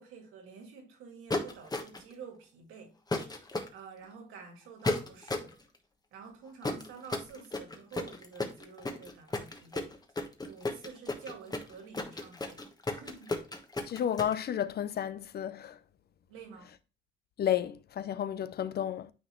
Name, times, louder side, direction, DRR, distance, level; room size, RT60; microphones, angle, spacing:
voice 1, 0.0-3.0 3.3-3.4 3.7-5.6 6.1-9.9 10.4-13.4 16.3-16.7, right 5 dB, 90° right, 2.0 m, -49 dB
sound 1, 1.3-2.1 3.1-3.7 4.8-5.5 6.6-14.3, left 2 dB, 20° left, 1.2 m, -33 dB
voice 2, 13.9-15.8 17.4-19.1, left 10 dB, 55° left, 0.6 m, -32 dB
9.3 x 3.9 x 3.0 m
cardioid pair, 90°, 20 cm